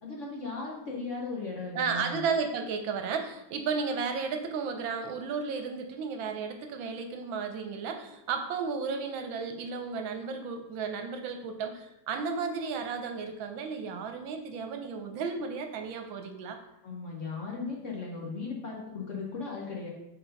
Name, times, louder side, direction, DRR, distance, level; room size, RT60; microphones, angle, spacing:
voice 1, 0.0-2.2 16.8-19.9, left 4 dB, 50° left, -2 dB, 1.0 m, -37 dB
voice 2, 1.7-16.6, right 5 dB, 75° right, 6 dB, 1.5 m, -33 dB
4.4 x 4.2 x 5.1 m, 0.87 s
omnidirectional pair, 2.2 m